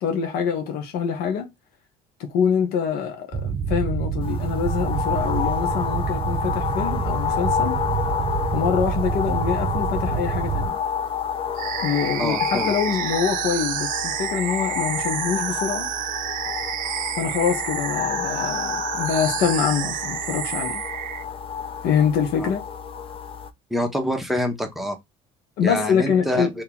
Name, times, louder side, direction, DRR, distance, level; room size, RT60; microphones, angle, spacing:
voice 1, 0.0-1.5 2.2-7.8 8.5-10.8 11.8-15.9 17.2-20.8 21.8-22.6 25.6-26.5, left 7 dB, 75° left, 1.0 m, -25 dB
sound 1, 3.3-10.7, right 6 dB, 30° right, 0.8 m, -27 dB
sound 2, 4.2-23.5, left 7 dB, 35° left, 0.5 m, -29 dB
sound 3, 11.6-21.2, right 13 dB, 60° right, 0.4 m, -29 dB
voice 2, 12.2-12.7 22.4-22.5 23.7-25.0 25.6-26.5, equal, ahead, 1.0 m, -26 dB
2.9 x 2.8 x 3.7 m
supercardioid pair, 85°, 16 cm